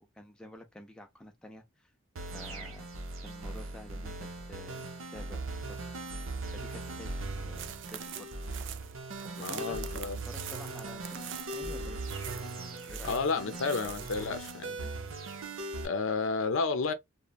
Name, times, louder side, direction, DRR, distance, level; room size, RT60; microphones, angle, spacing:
voice 1, 0.1-1.9 2.2-2.9 3.2-5.8 6.2-8.3 9.4-9.8 10.3-12.0 12.9-14.3, equal, 5° left, 0.4 m, -50 dB
sound 1, 2.2-15.9, right 2 dB, 85° right, 0.7 m, -39 dB
sound 2, 7.5-14.6, right 10 dB, 60° right, 0.4 m, -45 dB
voice 2, 9.3-10.2 13.0-14.9 15.8-16.9, left 4 dB, 75° left, 0.5 m, -31 dB
3.0 x 2.1 x 2.3 m
head